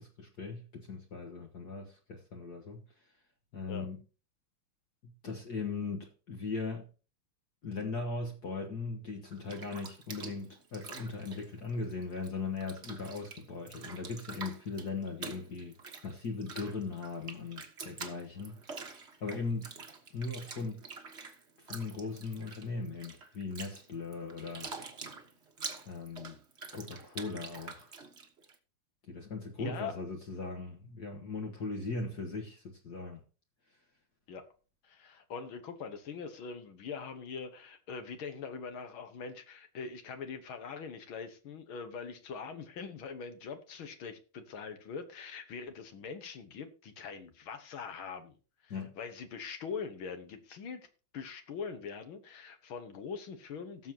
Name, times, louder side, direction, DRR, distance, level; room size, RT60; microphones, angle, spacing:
voice 1, 0.0-2.8 3.5-4.0 5.0-6.9 7.6-15.8 16.0-19.7 20.1-20.8 21.6-24.7 25.9-26.4 26.7-27.9 29.1-33.2 48.7-48.9, left 4 dB, 50° left, 1.8 m, -39 dB
Bathtub (filling or washing), 9.2-12.3 12.6-28.5, right 4 dB, 35° right, 1.4 m, -46 dB
voice 2, 29.6-29.9 34.3-34.5 34.8-48.4 48.6-50.9 51.1-53.9, left 5 dB, 70° left, 2.1 m, -42 dB
17.5 x 7.3 x 2.9 m
omnidirectional pair, 2.4 m